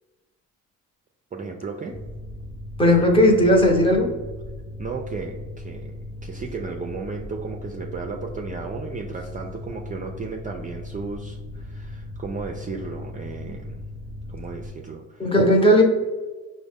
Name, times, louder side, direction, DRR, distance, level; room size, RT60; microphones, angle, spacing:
voice 1, 1.3-2.0 4.8-6.0 6.2-13.8 14.3-15.3, right 4 dB, 25° right, 1 dB, 0.4 m, -34 dB
Mechanical fan, 1.9-14.7, left 1 dB, 45° left, 1.1 m, -37 dB
voice 2, 2.8-4.1 15.2-15.8, equal, 20° left, 1 dB, 0.9 m, -16 dB
5.0 x 2.1 x 3.4 m, 1.2 s
cardioid pair, 90°, 30 cm